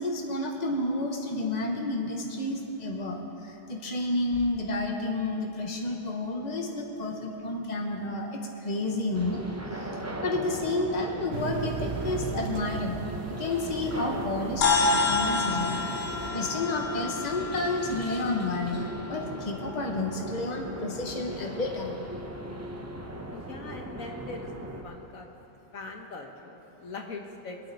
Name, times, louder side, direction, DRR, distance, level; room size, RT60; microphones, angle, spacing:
voice 1, 0.0-9.4 9.8-9.9 10.2-16.1 16.3-22.0, left 2 dB, 30° left, 1 dB, 1.3 m, -31 dB
sound 1, 9.1-24.8, right 1 dB, 15° right, 0.7 m, -38 dB
sound 2, 11.3-16.3, right 6 dB, 85° right, 1.2 m, -38 dB
sound 3, 14.6-19.2, left 3 dB, 85° left, 1.4 m, -28 dB
voice 2, 23.3-24.5 24.8-25.3 25.7-27.6, left 3 dB, 70° left, 2 dB, 1.5 m, -41 dB
24.5 x 8.7 x 4.2 m, 3.0 s
omnidirectional pair, 1.5 m